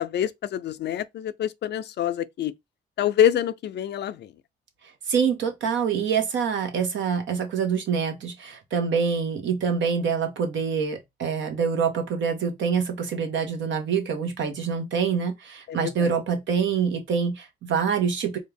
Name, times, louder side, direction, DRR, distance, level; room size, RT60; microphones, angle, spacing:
voice 1, 0.0-2.5 3.0-4.3 15.7-16.1, left 10 dB, 60° left, 0.4 m, -26 dB
voice 2, 5.1-18.4, right 6 dB, 70° right, 1.3 m, -25 dB
4.3 x 2.5 x 3.4 m
cardioid pair, 90°, 20 cm